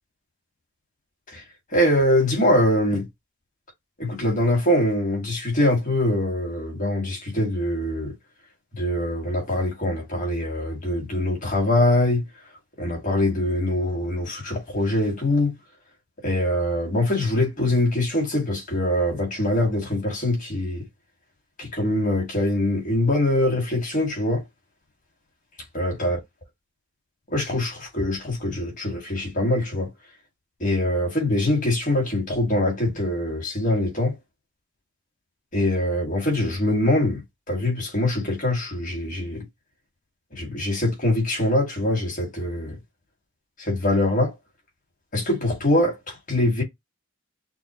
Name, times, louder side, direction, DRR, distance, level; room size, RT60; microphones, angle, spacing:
voice 1, 1.7-3.1 4.0-8.1 8.7-12.2 12.8-15.5 16.2-20.9 21.6-24.4 25.7-26.2 27.3-29.9 30.6-34.2 35.5-39.4 40.3-42.8 43.6-44.3 45.1-46.6, left 1 dB, 40° left, 2.2 m, -23 dB
6.1 x 2.1 x 3.1 m
head